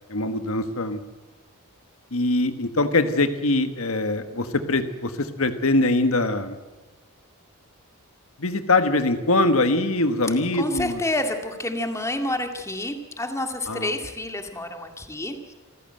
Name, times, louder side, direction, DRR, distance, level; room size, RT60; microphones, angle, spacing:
voice 1, 0.1-1.0 2.1-6.6 8.4-11.0 13.7-13.9, left 2 dB, 75° left, 9 dB, 1.5 m, -23 dB
voice 2, 10.6-15.5, left 1 dB, 15° left, 5 dB, 2.1 m, -29 dB
27.0 x 14.5 x 7.8 m, 1.3 s
head